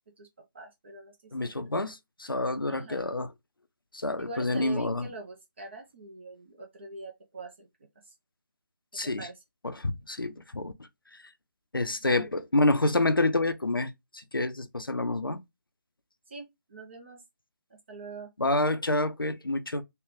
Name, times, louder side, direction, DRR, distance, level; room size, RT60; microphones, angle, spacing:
voice 1, 0.5-1.6 2.7-3.1 4.2-7.7 8.0-8.1 9.2-9.4 12.0-12.3 16.3-17.2 17.7-18.3, right 3 dB, 35° right, 0.6 m, -44 dB
voice 2, 1.3-3.3 3.9-5.1 8.9-9.3 9.6-10.7 11.1-11.2 11.7-15.4 18.4-19.8, left 2 dB, 85° left, 0.6 m, -28 dB
3.3 x 2.2 x 3.6 m
figure-of-eight pair, 155°, 11 cm